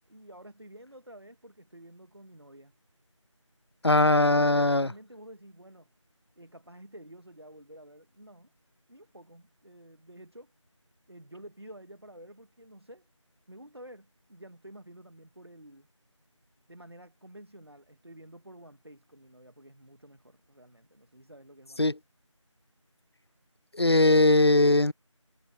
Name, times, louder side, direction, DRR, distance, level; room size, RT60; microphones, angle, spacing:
voice 1, 0.1-2.7 4.1-5.9 6.4-8.5 8.9-10.5 11.1-13.1 13.5-15.9 16.7-21.9, right 1 dB, 50° right, 1.9 m, -50 dB
voice 2, 3.8-4.9 21.8-22.0 23.7-24.9, left 2 dB, 55° left, 0.4 m, -20 dB
figure-of-eight pair, 180°, 17 cm